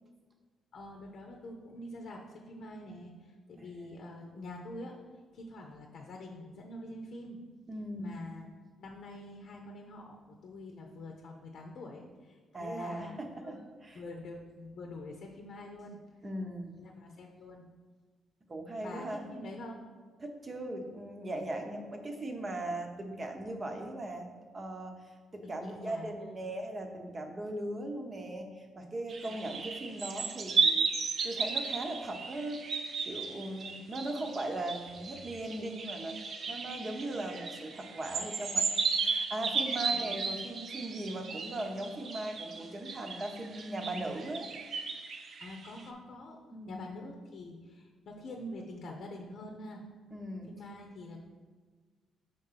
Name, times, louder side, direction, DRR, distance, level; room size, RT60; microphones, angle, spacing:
voice 1, 0.7-5.0 5.3-7.4 8.0-8.5 8.8-13.6 13.9-16.0 16.8-17.7 18.8-19.8 25.4-26.3 29.3-29.6 33.9-34.0 39.9-40.5 45.4-46.4 46.7-49.8 50.5-51.2, left 1 dB, 60° left, 2 dB, 0.8 m, -46 dB
voice 2, 3.6-3.9 7.7-8.2 12.5-14.0 16.2-16.8 18.5-19.2 20.2-24.3 24.5-24.9 25.3-32.6 33.0-44.5 46.5-46.8 50.1-50.5, right 1 dB, 30° right, 3 dB, 0.9 m, -39 dB
sound 1, 29.1-45.8, right 4 dB, 55° right, 0.6 m, -34 dB
5.2 x 3.7 x 5.7 m, 1.5 s
cardioid pair, 90°, 0 cm